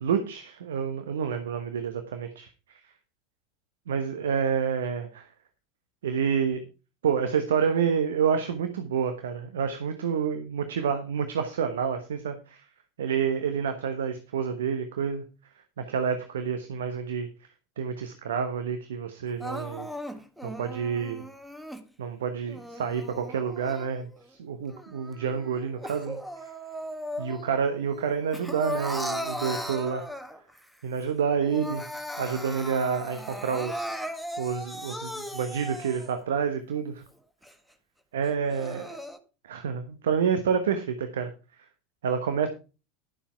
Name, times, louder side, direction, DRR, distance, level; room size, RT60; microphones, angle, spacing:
voice 1, 0.0-2.8 3.9-5.3 6.0-6.6 7.0-12.6 13.0-15.2 15.8-17.3 17.8-19.9 20.4-21.2 22.0-26.5 27.2-30.1 30.8-31.8 32.2-33.9 34.4-37.0 38.1-39.0 39.4-41.3 42.0-42.5, right 7 dB, 65° right, 8 dB, 1.1 m, -28 dB
Crying sobbing, 19.4-21.8 22.5-24.2 24.7-27.6 27.9-30.6 31.0-31.1 31.4-36.2 36.8-36.9 37.4-37.5 38.3-39.2, equal, ahead, 1.5 m, -37 dB
12.0 x 7.1 x 4.7 m, 0.32 s
figure-of-eight pair, 75°, 0 cm